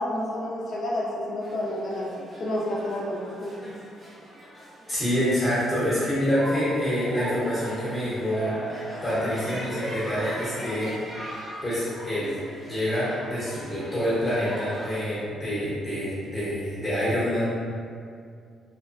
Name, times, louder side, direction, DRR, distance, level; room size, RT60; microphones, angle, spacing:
voice 1, 0.0-3.7, left 1 dB, 45° left, -5 dB, 0.4 m, -30 dB
sound 1, 1.4-15.0, equal, 25° right, 0.6 m, -43 dB
voice 2, 4.9-10.9 11.6-12.4 12.7-17.5, equal, 20° left, -11 dB, 0.8 m, -27 dB
Cheering, 6.3-11.2, right 1 dB, 80° right, 0.7 m, -35 dB
2.8 x 2.1 x 2.5 m, 2.3 s
cardioid pair, 130°, 0 cm